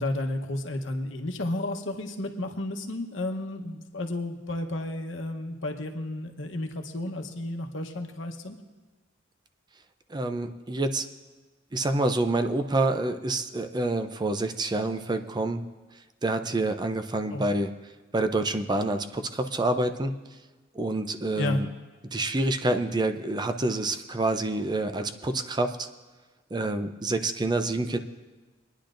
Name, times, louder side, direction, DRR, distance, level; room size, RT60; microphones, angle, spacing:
voice 1, 0.0-8.5 17.3-17.4 21.4-21.6, left 1 dB, 80° left, 3 dB, 1.0 m, -32 dB
voice 2, 10.1-11.1 11.7-15.6 16.2-17.7 18.1-20.1 20.7-21.6 22.1-25.9 26.5-28.0, right 2 dB, 25° right, 8 dB, 0.5 m, -27 dB
26.0 x 10.0 x 2.6 m, 1.3 s
head